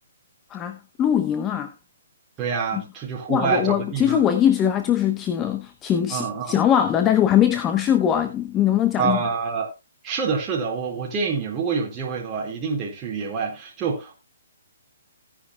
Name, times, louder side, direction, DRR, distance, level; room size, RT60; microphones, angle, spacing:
voice 1, 0.5-1.7 2.7-2.8 3.3-9.2, left 10 dB, 15° left, 0.8 m, -21 dB
voice 2, 2.4-4.2 6.1-6.6 9.0-9.7 10.0-14.1, right 5 dB, 20° right, 4.2 m, -26 dB
16.5 x 10.0 x 2.2 m
hypercardioid pair, 155°, 0 cm